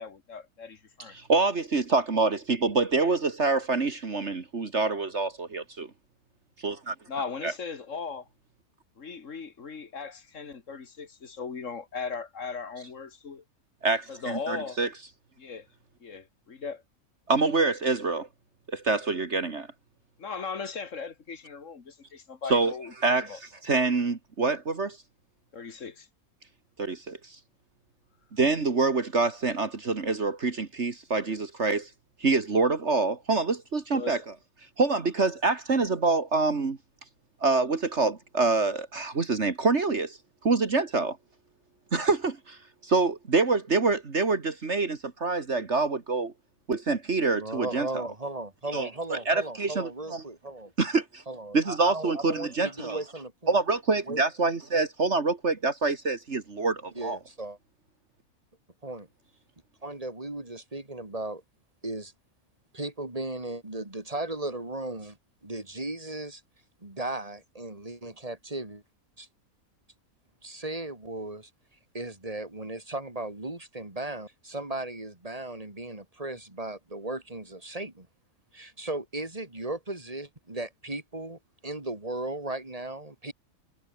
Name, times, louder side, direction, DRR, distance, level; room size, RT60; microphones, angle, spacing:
voice 1, 0.0-1.2 7.1-8.3 9.0-13.4 14.1-14.8 15.4-15.7 16.0-16.8 20.2-23.4 25.5-26.1 33.9-34.2, left 5 dB, 55° left, 2.2 m, -38 dB
voice 2, 1.1-5.9 6.6-7.0 7.4-7.5 13.8-14.9 17.3-18.3 18.7-19.7 22.5-22.7 23.0-25.0 26.8-27.2 28.3-31.9 32.2-34.2 34.8-36.8 37.4-40.2 40.4-41.2 41.9-46.3 46.7-47.9 48.7-50.2 50.8-51.2 51.5-53.0 53.5-57.2, right 3 dB, 50° right, 2.2 m, -26 dB
voice 3, 47.4-50.7 51.3-53.6 54.1-54.2 56.9-57.6 58.8-59.1 59.8-61.4 61.8-62.1 62.7-65.2 65.4-66.4 66.8-68.8 69.2-69.3 70.4-71.5 71.9-78.1 78.5-83.3, right 2 dB, 25° right, 3.9 m, -36 dB
omnidirectional pair, 1.5 m